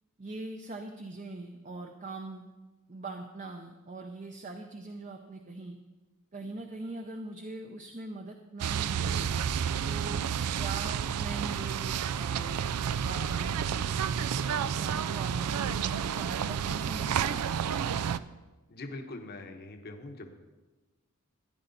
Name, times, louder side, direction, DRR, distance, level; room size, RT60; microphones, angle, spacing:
voice 1, 0.2-2.5 2.9-5.8 6.3-9.3 9.9-10.3 10.5-12.7 13.0-15.7 16.1-17.6, right 2 dB, 35° right, 4 dB, 0.7 m, -42 dB
sound 1, 8.6-18.2, right 8 dB, 90° right, 0.4 m, -30 dB
voice 2, 18.7-20.3, left 2 dB, 45° left, 4 dB, 1.0 m, -42 dB
14.5 x 10.0 x 4.0 m, 1.2 s
head